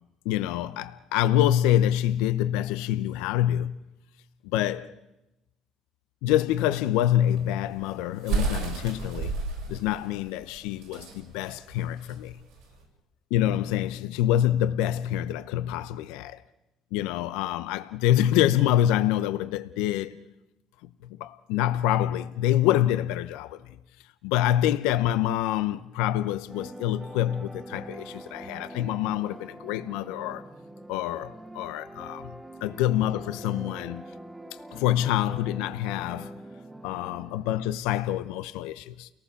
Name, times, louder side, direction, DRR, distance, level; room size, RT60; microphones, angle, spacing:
voice 1, 0.2-3.8 4.4-4.9 6.2-9.4 9.7-12.4 13.3-16.4 16.9-20.2 21.1-23.7 24.2-30.4 30.9-34.0 34.7-36.4 36.8-39.1, left 12 dB, 85° left, 0.7 m, -26 dB
sound 1, 7.2-12.8, right 4 dB, 80° right, 7.0 m, -32 dB
sound 2, 26.5-37.8, right 1 dB, 10° right, 1.7 m, -44 dB
29.5 x 19.0 x 7.0 m
supercardioid pair, 90°, 0 cm